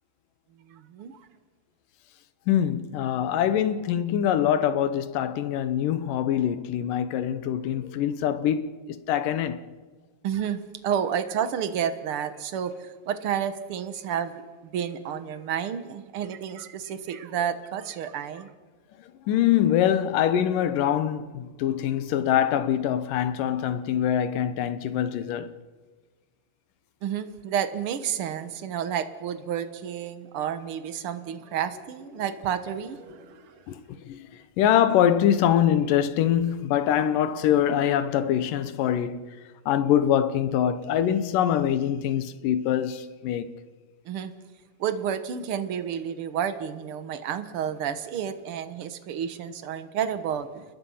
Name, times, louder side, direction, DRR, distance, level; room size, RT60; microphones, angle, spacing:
voice 1, 0.6-1.2 10.2-18.5 27.0-33.6 44.0-44.3 44.8-50.6, right 8 dB, 55° right, 1.6 m, -30 dB
voice 2, 2.5-9.6 19.3-25.5 33.7-34.3 34.6-39.2 39.7-43.5, left 10 dB, 80° left, 2.6 m, -24 dB
29.5 x 21.0 x 5.7 m
omnidirectional pair, 3.8 m